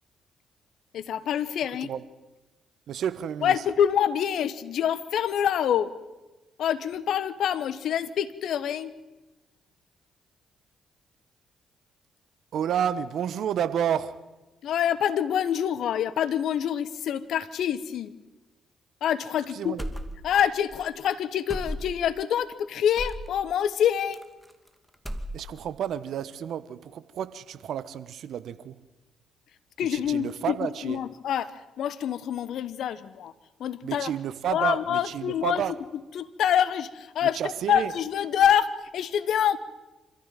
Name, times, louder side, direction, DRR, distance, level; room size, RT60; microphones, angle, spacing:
voice 1, 0.9-1.9 3.4-5.9 6.6-8.9 14.6-18.1 19.0-19.8 20.2-24.2 29.8-33.3 33.6-34.1 34.5-35.6 36.1-37.4 37.7-39.6, left 9 dB, 65° left, 1.1 m, -26 dB
voice 2, 2.9-3.6 12.5-14.2 19.5-19.8 25.3-28.8 29.9-31.0 33.8-35.7 37.4-37.9, right 9 dB, 65° right, 1.1 m, -30 dB
sound 1, 19.8-20.5 20.7-20.9 21.5-22.1 23.0-23.3 24.1-24.7 24.9-25.7, equal, 5° right, 2.4 m, -35 dB
26.5 x 14.5 x 9.2 m
hypercardioid pair, 45°, 0 cm